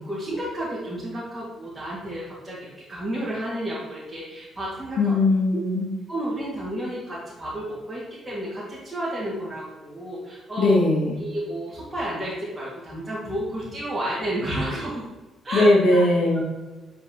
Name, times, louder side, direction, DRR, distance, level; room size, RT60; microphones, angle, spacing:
voice 1, 0.0-5.1 5.5-5.6 6.1-10.8 11.2-15.0 15.4-16.0, right 1 dB, 15° right, -8 dB, 2.1 m, -31 dB
voice 2, 5.0-5.9 10.6-11.2 15.5-16.4, left 2 dB, 75° left, -4 dB, 1.8 m, -19 dB
8.0 x 4.6 x 2.9 m, 1.2 s
cardioid pair, 90°, 0 cm